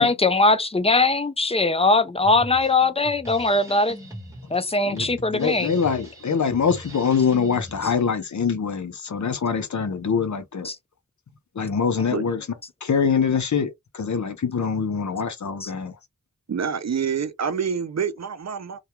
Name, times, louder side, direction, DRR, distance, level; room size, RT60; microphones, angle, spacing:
voice 1, 0.0-4.0 4.5-5.7 10.6-10.8 15.6-15.7, left 3 dB, 20° left, 0.3 m, -20 dB
Drum kit, 2.2-8.2, right 1 dB, 10° right, 1.0 m, -40 dB
voice 2, 4.9-10.7 11.6-12.5 12.8-15.9, left 6 dB, 60° left, 0.6 m, -24 dB
voice 3, 16.5-18.8, right 7 dB, 55° right, 0.5 m, -27 dB
2.3 x 2.2 x 2.9 m
wide cardioid pair, 80°, 32 cm